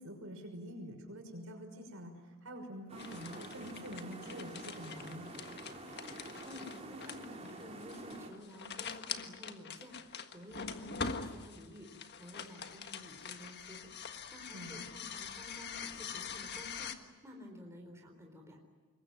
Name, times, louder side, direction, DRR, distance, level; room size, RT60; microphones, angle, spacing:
voice 1, 0.0-5.3 14.5-14.8, equal, 65° right, 4 dB, 6.1 m, -46 dB
sound 1, 2.9-8.3, right 2 dB, 30° right, 3.7 m, -48 dB
sound 2, 3.0-16.9, left 6 dB, 50° left, 1.5 m, -44 dB
voice 2, 6.2-18.6, left 1 dB, 15° right, 1 dB, 4.2 m, -52 dB
26.5 x 22.5 x 9.1 m, 1.4 s
head